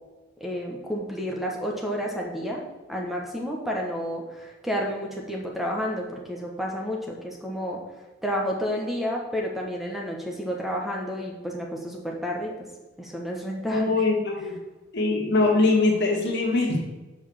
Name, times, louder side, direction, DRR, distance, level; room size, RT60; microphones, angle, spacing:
voice 1, 0.4-2.6 2.9-7.8 8.2-12.5 13.0-13.9, equal, ahead, -1 dB, 1.2 m, -30 dB
voice 2, 13.7-14.6 14.9-16.8, left 3 dB, 60° left, 0 dB, 2.0 m, -22 dB
6.4 x 5.5 x 7.2 m, 1.2 s
head